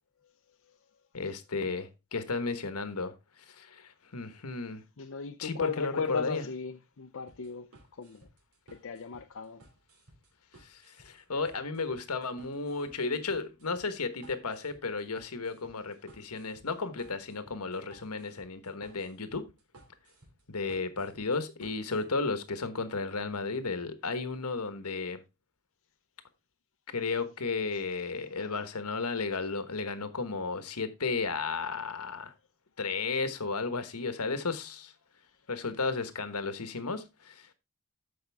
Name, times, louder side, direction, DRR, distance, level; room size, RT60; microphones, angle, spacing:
voice 1, 1.1-3.1 3.5-4.8 5.4-6.4 10.6-19.4 20.5-25.2 26.9-32.3 32.8-34.9 35.5-37.5, left 4 dB, 80° left, 1.3 m, -34 dB
voice 2, 5.0-8.3 8.7-9.6 27.7-27.8 28.3-28.8, left 5 dB, 65° left, 0.7 m, -37 dB
sound 1, 7.3-22.0, right 2 dB, 75° right, 2.8 m, -58 dB
13.5 x 5.3 x 3.4 m
head